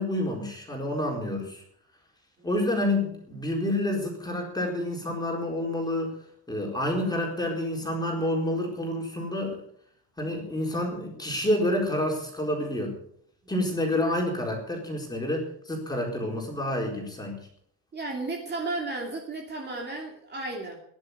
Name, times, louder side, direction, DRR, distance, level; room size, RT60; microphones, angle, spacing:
voice 1, 0.0-1.6 2.4-6.1 6.5-9.6 10.2-13.0 13.5-17.4, left 1 dB, 10° left, 0 dB, 4.2 m, -28 dB
voice 2, 17.9-20.8, right 2 dB, 25° right, 0 dB, 2.7 m, -33 dB
16.5 x 11.0 x 6.8 m, 0.64 s
cardioid pair, 165°, 41 cm